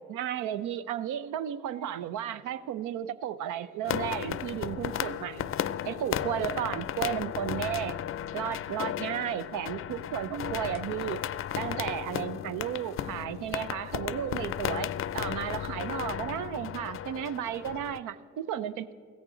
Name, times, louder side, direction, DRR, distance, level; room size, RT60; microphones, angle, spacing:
voice 1, 0.0-5.5 5.8-8.0 8.3-11.2 11.5-18.9, right 10 dB, 85° right, 16 dB, 0.6 m, -34 dB
Raining Drops in Sheet Metal, 3.8-18.0, left 10 dB, 45° left, 0.4 m, -34 dB
16.0 x 14.0 x 3.8 m, 2.4 s
cardioid pair, 90°, 30 cm